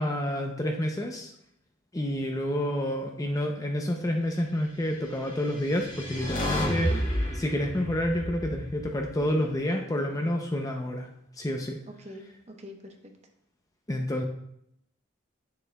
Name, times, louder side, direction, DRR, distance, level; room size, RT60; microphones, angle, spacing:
voice 1, 0.0-1.3 1.9-6.9 7.4-11.1 11.4-11.8 13.9-14.2, left 1 dB, 15° left, 2 dB, 0.5 m, -29 dB
sound 1, 5.3-9.6, equal, 40° left, 1.8 m, -31 dB
voice 2, 6.5-7.0 11.9-13.1, equal, 35° right, 3 dB, 0.8 m, -43 dB
9.9 x 6.8 x 2.2 m, 0.76 s
head